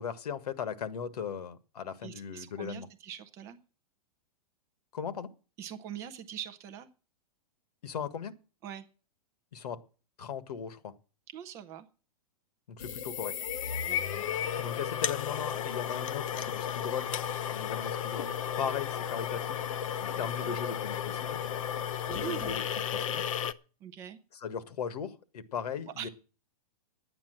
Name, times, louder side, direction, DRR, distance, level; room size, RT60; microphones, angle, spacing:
voice 1, 0.0-2.9 4.9-5.3 7.8-8.3 9.5-9.8 10.2-10.9 12.7-13.3 14.6-17.2 17.5-19.6 20.0-21.4 22.1-22.6 22.9-23.2 24.4-26.1, left 7 dB, 85° left, 13 dB, 1.6 m, -38 dB
voice 2, 2.0-3.6 5.6-6.9 8.6-8.9 11.3-11.9 13.9-14.0 20.2-20.6 22.1-22.6 23.8-24.2 26.0-26.1, right 9 dB, 15° right, 8 dB, 0.5 m, -43 dB
sound 1, 12.8-23.5, left 9 dB, 55° left, 0.7 m, -34 dB
11.0 x 8.9 x 7.6 m, 0.37 s
supercardioid pair, 180°, 20 cm